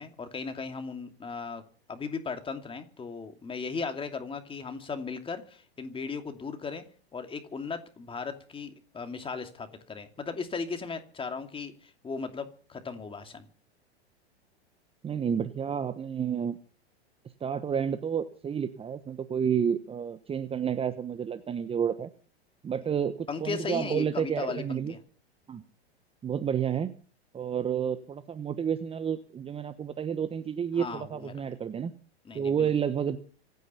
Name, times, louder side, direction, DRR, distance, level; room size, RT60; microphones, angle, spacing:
voice 1, 0.0-1.6 1.9-6.8 7.1-13.5 23.3-25.0 30.8-31.4 32.2-32.7, left 5 dB, 15° left, 6 dB, 2.7 m, -37 dB
voice 2, 15.0-16.6 17.4-22.1 22.6-24.9 25.5-25.6 26.2-26.9 27.3-31.9 32.3-33.2, right 8 dB, 20° right, 11 dB, 1.1 m, -30 dB
25.5 x 9.6 x 5.7 m, 0.42 s
hypercardioid pair, 95°, 32 cm